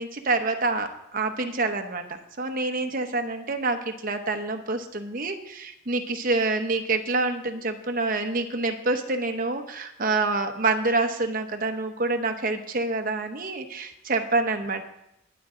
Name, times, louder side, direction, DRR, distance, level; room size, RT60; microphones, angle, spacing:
voice 1, 0.0-2.0 2.4-14.8, right 3 dB, 40° right, 5 dB, 1.0 m, -27 dB
20.5 x 7.6 x 3.8 m, 0.83 s
head